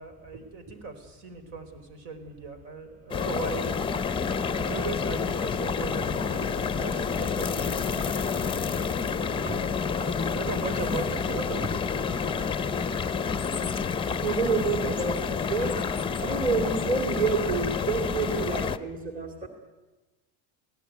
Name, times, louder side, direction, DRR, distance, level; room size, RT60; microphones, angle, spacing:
voice 1, 0.0-3.8 4.5-9.5 10.0-11.8, right 4 dB, 60° right, 9 dB, 4.5 m, -38 dB
sound 1, 3.1-18.8, left 6 dB, 10° left, 0.8 m, -29 dB
voice 2, 9.3-10.1 10.4-10.5 14.2-15.8 16.2-19.5, right 4 dB, 20° right, 4 dB, 2.5 m, -29 dB
22.5 x 17.0 x 9.5 m, 1.2 s
supercardioid pair, 135°, 45 cm